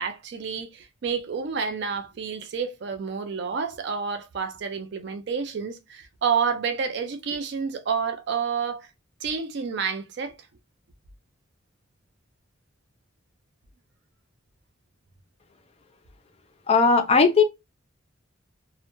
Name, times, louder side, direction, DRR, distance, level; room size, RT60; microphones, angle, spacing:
voice 1, 0.0-8.9 9.2-10.4, right 6 dB, 60° right, 0.4 m, -29 dB
voice 2, 16.7-17.4, left 4 dB, 30° left, 0.4 m, -17 dB
2.1 x 2.1 x 2.9 m
head